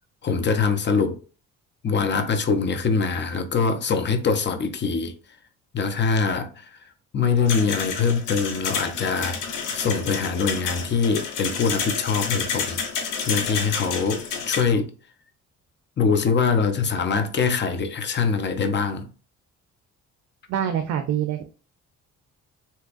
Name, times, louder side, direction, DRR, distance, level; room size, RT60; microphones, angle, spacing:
voice 1, 0.2-1.2 1.8-5.1 5.7-6.7 7.1-12.8 13.3-14.9 16.0-19.1, left 5 dB, 35° left, 0.6 m, -23 dB
sound 1, 7.5-14.6, left 6 dB, 80° left, 0.8 m, -29 dB
voice 2, 20.5-21.4, right 9 dB, 65° right, 0.5 m, -25 dB
3.4 x 2.9 x 2.4 m
cardioid pair, 90°, 30 cm